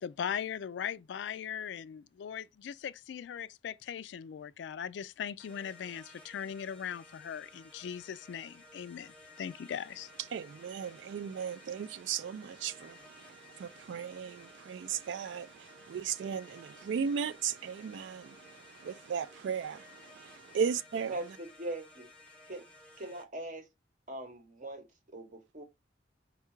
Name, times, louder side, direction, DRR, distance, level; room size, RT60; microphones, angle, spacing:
voice 1, 0.0-10.1, left 8 dB, 70° left, 0.3 m, -39 dB
sound 1, 5.4-23.2, left 2 dB, 5° left, 0.7 m, -56 dB
voice 2, 10.3-21.1, right 7 dB, 80° right, 0.3 m, -36 dB
voice 3, 21.1-22.1 22.5-22.7 23.0-23.7 24.1-25.6, right 1 dB, 45° right, 0.9 m, -41 dB
4.6 x 2.3 x 4.4 m
head